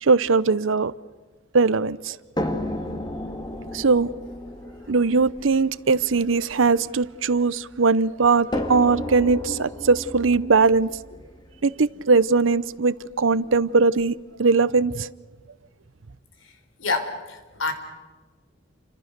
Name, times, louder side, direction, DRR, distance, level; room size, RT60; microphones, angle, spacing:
voice 1, 0.0-0.9 1.5-2.2 3.7-4.1 4.9-10.9 11.6-15.1, right 4 dB, 90° right, 0.8 m, -20 dB
sound 1, 2.4-7.6 8.5-12.5 13.4-13.5 14.0-14.1, left 1 dB, 20° left, 2.3 m, -33 dB
voice 2, 16.8-17.7, left 3 dB, 85° left, 4.2 m, -27 dB
30.0 x 25.5 x 6.8 m
head